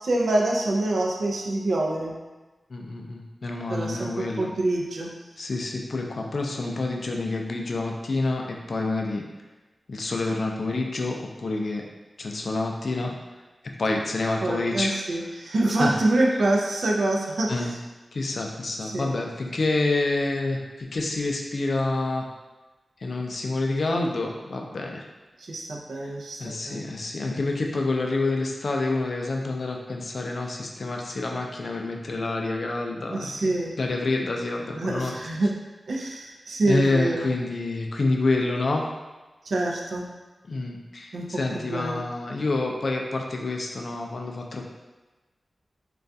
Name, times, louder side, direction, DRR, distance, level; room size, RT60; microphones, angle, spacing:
voice 1, 0.0-2.1 3.7-5.1 14.4-17.6 18.8-19.1 25.4-26.9 33.1-33.7 34.7-35.5 35.9-37.3 39.5-40.0 41.1-42.0, right 2 dB, 80° right, -1 dB, 0.4 m, -26 dB
voice 2, 2.7-4.5 5.4-9.2 9.9-11.8 12.2-13.1 13.8-15.0 15.6-15.9 17.5-17.7 18.1-22.3 23.0-25.0 26.0-26.1 26.4-33.3 33.8-35.1 36.6-38.9 40.5-44.7, left 2 dB, 65° left, 1 dB, 0.3 m, -28 dB
2.3 x 2.2 x 2.6 m, 1.2 s
wide cardioid pair, 65°, 0 cm